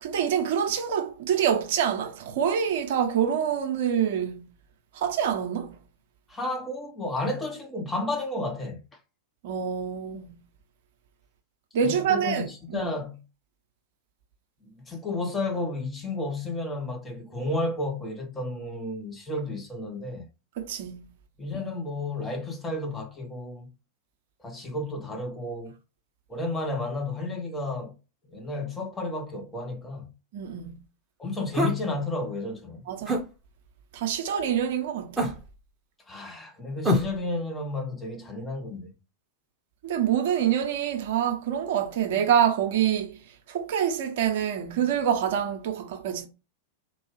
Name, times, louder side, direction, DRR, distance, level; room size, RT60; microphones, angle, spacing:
voice 1, 0.0-4.4 4.9-5.8 9.4-10.3 11.7-12.9 20.6-21.0 30.3-30.8 32.9-33.2 33.9-35.3 39.8-43.2 43.5-46.3, right 8 dB, 55° right, 0.7 m, -26 dB
voice 2, 6.3-8.8 11.8-13.2 14.8-20.3 21.4-23.7 24.4-25.7 26.3-27.9 28.3-30.1 31.2-32.9 36.1-38.9, left 2 dB, 15° left, 0.9 m, -32 dB
sound 1, 31.5-31.8 33.1-33.3 35.2-35.6 36.8-37.2, equal, 10° right, 0.9 m, -25 dB
4.0 x 2.3 x 3.1 m
figure-of-eight pair, 90°, 0 cm